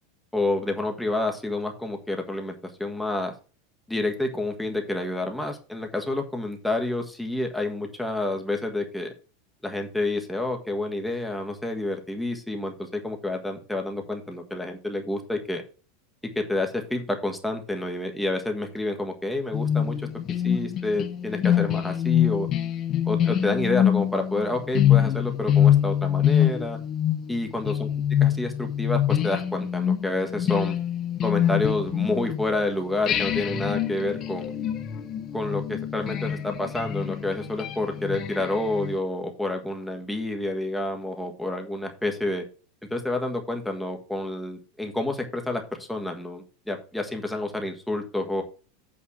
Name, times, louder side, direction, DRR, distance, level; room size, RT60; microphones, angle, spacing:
voice 1, 0.3-3.3 3.9-9.1 9.6-15.6 16.2-20.1 20.4-22.5 23.0-26.8 27.3-27.9 28.2-30.8 31.2-34.5 35.3-42.4 42.9-48.4, left 2 dB, 5° left, 3 dB, 1.5 m, -29 dB
sound 1, 19.5-32.6 33.1-39.0, left 10 dB, 30° left, 1.0 m, -25 dB
8.6 x 4.1 x 6.3 m, 0.35 s
supercardioid pair, 160°, 0 cm